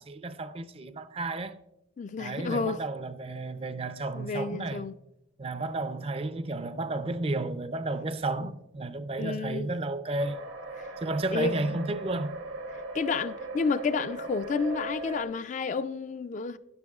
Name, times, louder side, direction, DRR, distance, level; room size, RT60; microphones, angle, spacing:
voice 1, 0.0-1.6 2.2-4.9 5.4-10.4 11.0-12.4, right 2 dB, 30° right, 0.4 m, -32 dB
voice 2, 2.0-2.8 4.1-4.9 8.4-8.5 9.2-9.7 11.3-11.8 12.9-16.6, left 4 dB, 40° left, 0.3 m, -30 dB
sound 1, 10.2-15.2, right 2 dB, 80° right, 1.2 m, -38 dB
12.5 x 10.5 x 2.4 m
head